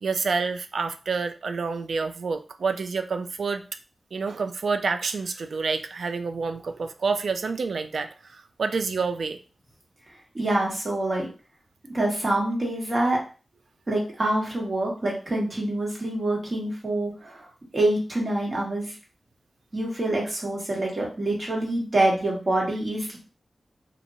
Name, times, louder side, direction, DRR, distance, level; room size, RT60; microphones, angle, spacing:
voice 1, 0.0-3.6 4.1-9.4, right 4 dB, 80° right, 8 dB, 0.3 m, -28 dB
voice 2, 10.3-11.3 11.9-13.2 13.9-17.5 17.7-18.9 19.7-23.2, right 1 dB, 40° right, -3 dB, 1.3 m, -26 dB
3.0 x 2.5 x 2.7 m, 0.35 s
wide cardioid pair, 95°, 0 cm